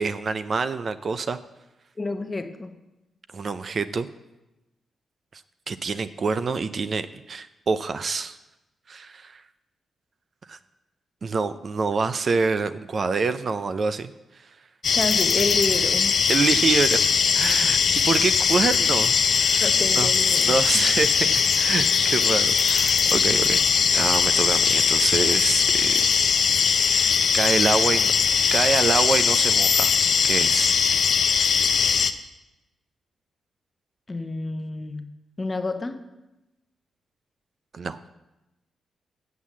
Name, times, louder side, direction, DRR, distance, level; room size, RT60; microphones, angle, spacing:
voice 1, 0.0-1.4 3.3-4.1 5.3-5.4 5.7-8.4 8.9-9.4 10.5-10.6 11.2-14.1 16.3-17.1 17.3-17.8 18.0-19.7 20.0-20.1 20.4-26.0 26.9-28.1 28.5-29.9 30.2-30.8 31.3-31.5 37.7-38.0, right 4 dB, 50° right, 12 dB, 0.5 m, -26 dB
voice 2, 2.0-2.8 14.9-16.1 19.6-20.6 34.1-35.1 35.4-36.0, left 2 dB, 25° left, 7 dB, 0.9 m, -29 dB
sound 1, 14.8-32.1, left 6 dB, 60° left, 0.6 m, -20 dB
8.3 x 7.5 x 7.2 m, 0.99 s
cardioid pair, 90°, 0 cm